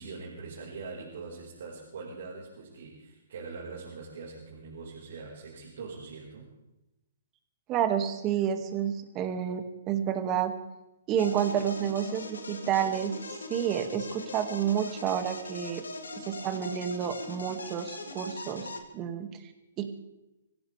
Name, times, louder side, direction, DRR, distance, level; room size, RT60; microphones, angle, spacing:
voice 1, 0.0-6.5, right 4 dB, 65° right, -5 dB, 4.9 m, -42 dB
voice 2, 7.7-10.6 11.1-13.1 13.5-15.8 16.1-19.5 19.8-19.9, right 9 dB, 25° right, 6 dB, 2.1 m, -30 dB
sound 1, 11.2-18.8, left 2 dB, 90° left, 2.4 m, -41 dB
25.0 x 16.5 x 3.5 m, 0.94 s
hypercardioid pair, 135°, 0 cm